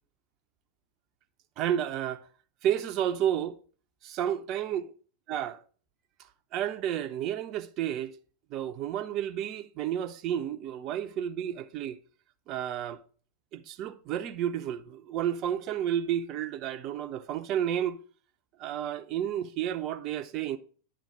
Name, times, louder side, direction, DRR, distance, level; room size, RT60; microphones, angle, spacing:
voice 1, 1.6-2.3 2.6-3.6 4.0-4.8 5.3-5.6 6.5-8.1 8.5-12.0 12.5-13.0 13.5-18.0 18.6-20.6, right 10 dB, 35° right, 0.5 m, -31 dB
9.7 x 3.7 x 4.8 m
figure-of-eight pair, 90°, 0 cm